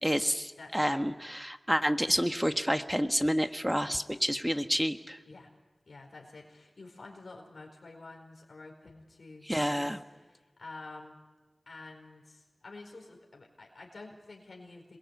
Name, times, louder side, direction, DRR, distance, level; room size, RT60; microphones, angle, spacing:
voice 1, 0.0-5.2 9.5-10.0, equal, 5° right, 8 dB, 1.4 m, -29 dB
voice 2, 0.6-1.0 5.2-5.5 5.8-11.2 11.7-15.0, left 3 dB, 80° left, 1 dB, 4.6 m, -49 dB
27.0 x 22.0 x 8.3 m, 1.2 s
wide cardioid pair, 50°, 0 cm